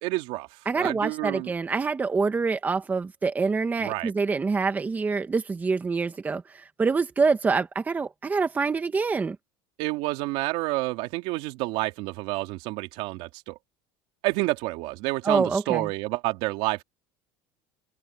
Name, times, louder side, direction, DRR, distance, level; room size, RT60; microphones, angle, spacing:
voice 1, 0.0-0.5 0.7-1.5 3.8-4.1 9.8-13.6 14.2-16.8, right 20 dB, 65° right, 2.9 m, -29 dB
voice 2, 0.6-9.4 15.2-15.9, right 4 dB, 15° right, 1.4 m, -26 dB
open air
cardioid pair, 155°, 11 cm